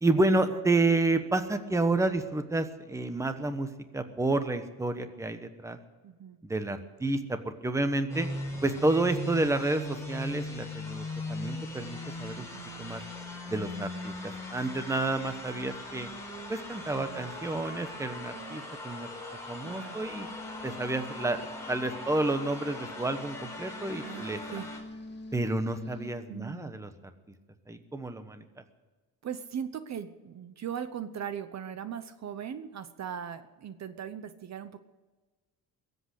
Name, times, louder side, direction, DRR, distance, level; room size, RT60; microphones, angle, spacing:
voice 1, 0.0-3.7 3.9-5.8 6.4-8.3 8.6-12.5 12.8-13.0 13.5-16.1 16.5-19.1 19.5-20.3 20.6-24.4 25.3-26.9 27.7-28.4, right 2 dB, 10° right, 9 dB, 1.1 m, -30 dB
voice 2, 6.0-6.4 12.4-12.7 16.9-17.3 19.6-20.0 24.0-24.7 26.3-26.8 29.2-34.8, right 8 dB, 50° right, 11 dB, 0.9 m, -39 dB
sound 1, 8.1-24.8, left 1 dB, 10° left, 4.4 m, -39 dB
sound 2, 20.0-26.1, left 1 dB, 30° left, 2.1 m, -46 dB
22.0 x 8.2 x 8.1 m, 1.3 s
cardioid pair, 135°, 36 cm